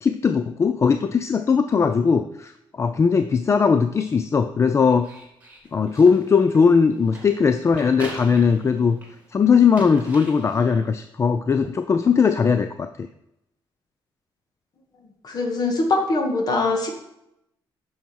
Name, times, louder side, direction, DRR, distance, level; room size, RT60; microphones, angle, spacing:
voice 1, 0.0-2.5 2.8-5.1 5.7-9.0 9.3-13.1, left 5 dB, 30° left, 9 dB, 0.4 m, -19 dB
sound 1, 4.9-9.2 9.6-10.9, right 1 dB, 15° right, 2.8 m, -41 dB
voice 2, 15.2-16.9, left 2 dB, 50° left, 3 dB, 1.9 m, -22 dB
9.1 x 6.4 x 4.6 m, 0.82 s
cardioid pair, 125°, 9 cm